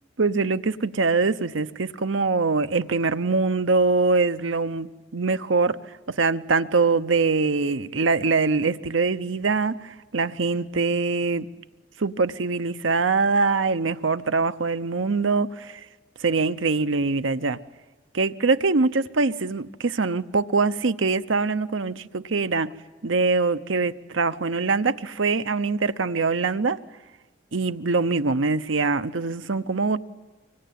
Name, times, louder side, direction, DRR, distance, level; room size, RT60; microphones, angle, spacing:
voice 1, 0.2-5.8 6.1-11.5 12.0-15.8 16.2-17.6 18.1-22.7 23.0-26.8 27.5-30.0, right 4 dB, 80° right, 0.8 m, -23 dB
25.0 x 24.0 x 9.3 m
head